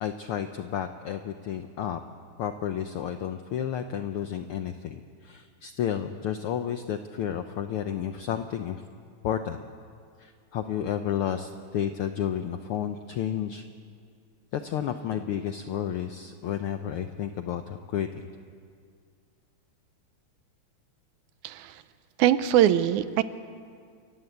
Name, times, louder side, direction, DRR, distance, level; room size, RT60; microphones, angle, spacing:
voice 1, 0.0-2.0 2.4-8.8 9.2-9.6 10.2-13.6 14.5-18.3, left 9 dB, 80° left, 8 dB, 1.2 m, -31 dB
voice 2, 21.4-21.8 22.2-23.2, right 11 dB, 85° right, 13 dB, 2.2 m, -22 dB
28.5 x 15.5 x 7.9 m, 2.1 s
omnidirectional pair, 3.4 m